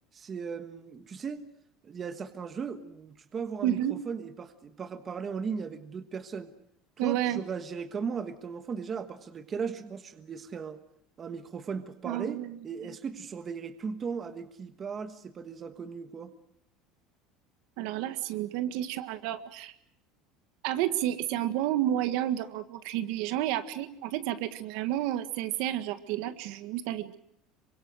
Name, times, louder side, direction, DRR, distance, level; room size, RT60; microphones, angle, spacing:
voice 1, 0.1-1.4 1.8-6.5 7.0-10.8 11.2-16.3, right 6 dB, 25° right, 8 dB, 1.3 m, -37 dB
voice 2, 3.6-4.0 7.0-7.4 12.0-12.6 17.8-19.7 20.6-27.2, right 12 dB, 70° right, 10 dB, 1.7 m, -30 dB
27.5 x 24.5 x 6.4 m, 0.71 s
cardioid pair, 160°, 0 cm